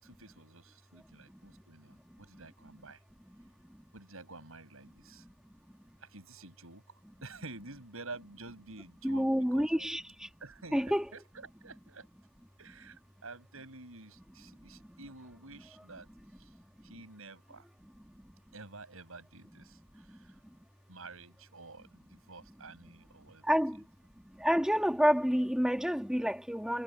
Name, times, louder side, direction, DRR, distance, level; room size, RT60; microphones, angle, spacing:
voice 1, 0.0-3.0 3.9-5.2 6.0-6.8 7.2-9.9 10.4-12.1 12.6-16.1 16.4-16.5 16.8-17.7 18.5-20.4 20.9-23.9, right 3 dB, 80° right, 6.2 m, -50 dB
voice 2, 9.0-10.0 10.7-11.0 23.5-23.8 24.4-26.8, equal, 5° right, 1.8 m, -28 dB
head